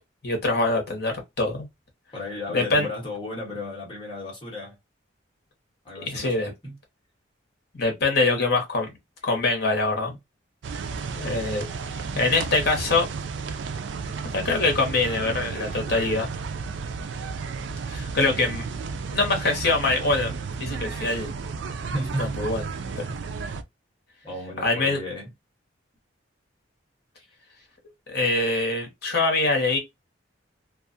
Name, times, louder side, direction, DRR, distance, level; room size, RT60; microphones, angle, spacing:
voice 1, 0.2-1.7 2.5-2.9 6.0-6.5 7.7-8.9 9.2-10.1 11.1-13.1 14.3-16.3 17.9-18.6 19.1-20.3 20.6-21.3 22.2-23.1 24.6-25.0 28.1-29.8, left 3 dB, 55° left, 1.0 m, -24 dB
voice 2, 2.1-4.8 5.8-6.3 6.6-6.8 21.8-22.4 24.2-25.3 27.2-27.3, left 1 dB, 25° left, 1.3 m, -34 dB
sound 1, 10.6-23.6, right 5 dB, 65° right, 0.3 m, -33 dB
2.4 x 2.4 x 2.5 m
head